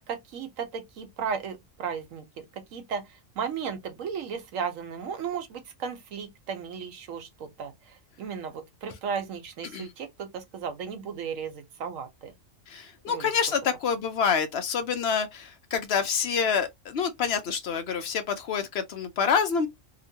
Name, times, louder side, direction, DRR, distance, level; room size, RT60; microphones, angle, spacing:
voice 1, 0.0-12.3 13.1-13.3, right 6 dB, 90° right, 1.2 m, -35 dB
voice 2, 12.7-19.7, left 6 dB, 65° left, 0.8 m, -27 dB
2.9 x 2.1 x 2.7 m
omnidirectional pair, 1.3 m